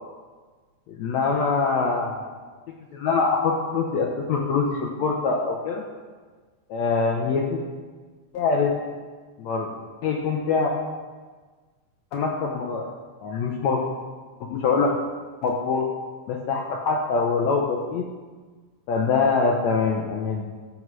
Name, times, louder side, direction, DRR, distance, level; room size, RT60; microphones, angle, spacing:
voice 1, 1.0-2.4 2.9-5.8 6.7-7.6 8.3-8.7 9.4-9.7 10.0-10.7 12.1-12.9 13.2-13.8 14.4-15.0 15.4-15.8 16.3-18.0 18.9-20.5, left 4 dB, 75° left, -1 dB, 2.1 m, -24 dB
14.0 x 4.7 x 6.2 m, 1.4 s
omnidirectional pair, 3.3 m